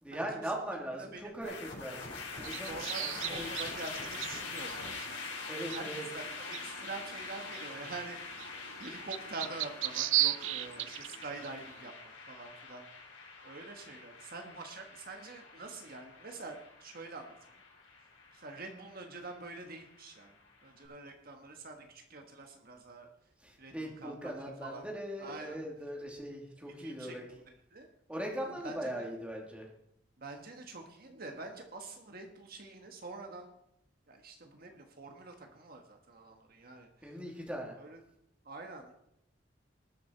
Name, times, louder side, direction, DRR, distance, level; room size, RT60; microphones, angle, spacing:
voice 1, 0.0-3.5 5.5-6.1 23.4-27.2 28.1-29.7 37.0-37.8, right 1 dB, 5° right, -1 dB, 2.7 m, -40 dB
voice 2, 0.7-1.3 2.6-12.9 13.4-17.4 18.3-20.3 20.6-23.1 23.6-24.8 25.2-25.6 26.8-27.2 27.7-27.9 28.6-29.0 30.2-33.5 34.1-37.2 37.8-38.0 38.4-38.9, right 3 dB, 50° right, 4 dB, 1.5 m, -46 dB
sound 1, 1.4-20.7, left 4 dB, 80° left, 5.2 m, -45 dB
sound 2, 2.3-11.8, right 15 dB, 90° right, 0.4 m, -38 dB
20.0 x 6.9 x 4.6 m, 0.78 s
head